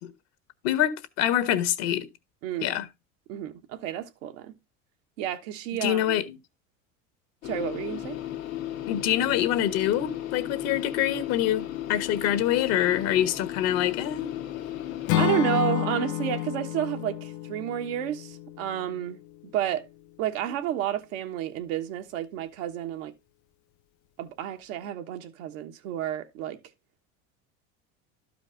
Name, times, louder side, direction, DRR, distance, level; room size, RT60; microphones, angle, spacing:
voice 1, 0.6-2.1 2.6-2.9 5.8-6.4 8.9-14.3, left 12 dB, 65° left, 1.4 m, -25 dB
voice 2, 2.4-2.7 3.3-4.6 5.2-6.2 7.4-8.2 15.1-19.2 19.5-19.9 20.2-23.1 24.2-26.6, right 11 dB, 75° right, 1.3 m, -31 dB
sound 1, 7.4-15.2, left 12 dB, 90° left, 1.7 m, -35 dB
Acoustic guitar / Strum, 15.1-19.2, left 14 dB, 50° left, 0.5 m, -30 dB
12.0 x 5.1 x 3.8 m
supercardioid pair, 95°, 40 cm